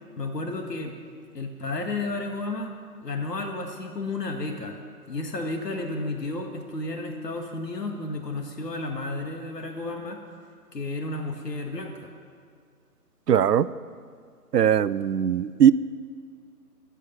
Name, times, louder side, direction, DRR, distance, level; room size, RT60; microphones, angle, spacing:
voice 1, 0.2-0.9 1.3-2.7 3.0-4.8 5.1-10.2 10.7-12.0, left 2 dB, 80° left, 4 dB, 1.9 m, -32 dB
voice 2, 13.3-13.7 14.5-15.7, right 9 dB, 75° right, 17 dB, 0.6 m, -19 dB
15.0 x 6.7 x 9.6 m, 2.1 s
hypercardioid pair, 165°, 48 cm